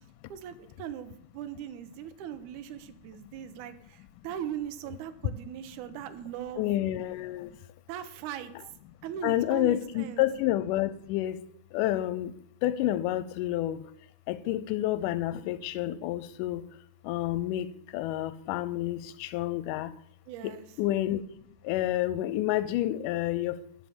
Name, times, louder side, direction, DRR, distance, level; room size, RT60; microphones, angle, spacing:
voice 1, 0.3-4.0 4.2-6.7 7.9-8.5 9.0-10.2 20.3-20.7, right 10 dB, 75° right, 9 dB, 2.1 m, -39 dB
voice 2, 6.6-7.5 9.2-11.4 11.7-12.3 12.6-13.8 14.3-16.6 17.0-19.9 20.4-20.5 20.8-21.2 21.7-23.6, left 14 dB, 80° left, 15 dB, 2.0 m, -29 dB
11.5 x 5.0 x 6.9 m, 0.73 s
omnidirectional pair, 4.0 m